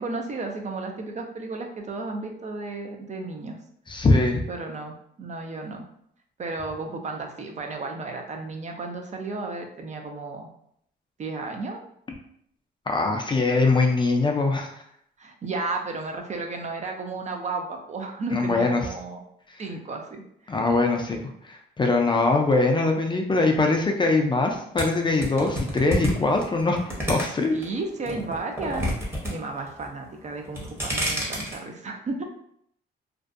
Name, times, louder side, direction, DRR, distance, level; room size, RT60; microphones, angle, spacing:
voice 1, 0.0-3.6 4.5-5.8 6.4-10.5 11.2-11.8 15.2-19.2 19.6-20.6 27.5-32.2, right 3 dB, 35° right, 3 dB, 0.4 m, -33 dB
voice 2, 3.9-4.5 12.9-14.7 18.3-18.8 20.5-21.2 21.4-27.6, left 3 dB, 25° left, 2 dB, 0.4 m, -22 dB
sound 1, 24.8-27.6 28.0-29.3 29.6-30.1 30.4-31.6, equal, 10° right, 0.8 m, -28 dB
2.5 x 2.1 x 2.4 m, 0.69 s
cardioid pair, 90°, 20 cm